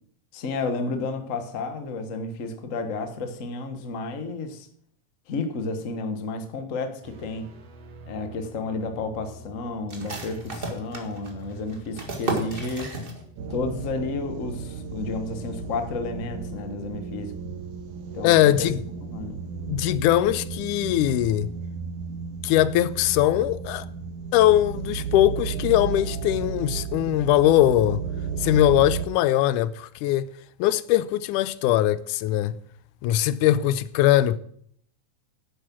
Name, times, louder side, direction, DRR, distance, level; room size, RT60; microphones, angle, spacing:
voice 1, 0.3-4.7 5.3-7.5 8.1-12.9 13.5-17.3 18.1-18.7 19.1-19.4, left 3 dB, 50° left, 1.0 m, -31 dB
sound 1, 7.0-13.9, right 2 dB, 60° right, 2.3 m, -47 dB
sound 2, 9.9-13.5 13.8-13.9 14.3-14.8, right 2 dB, 25° right, 1.2 m, -34 dB
sound 3, 13.4-29.1, right 6 dB, 80° right, 2.8 m, -33 dB
voice 2, 18.2-18.8 19.7-21.5 22.4-23.9 24.3-28.0 28.4-30.3 30.6-32.6 33.0-34.4, left 13 dB, 85° left, 2.1 m, -21 dB
11.0 x 8.4 x 6.0 m
omnidirectional pair, 3.5 m